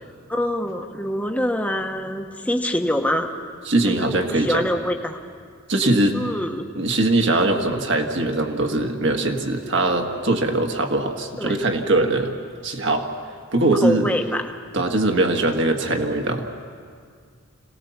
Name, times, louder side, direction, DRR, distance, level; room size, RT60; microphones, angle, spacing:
voice 1, 0.3-3.3 3.8-5.2 6.1-6.7 11.4-11.5 13.8-14.5, left 1 dB, 5° left, 4 dB, 1.0 m, -25 dB
voice 2, 3.7-4.7 5.7-6.2 6.8-12.3 12.6-13.1 13.5-14.1 14.7-16.5, right 2 dB, 55° right, 3 dB, 1.8 m, -21 dB
26.0 x 18.5 x 7.2 m, 2.1 s
head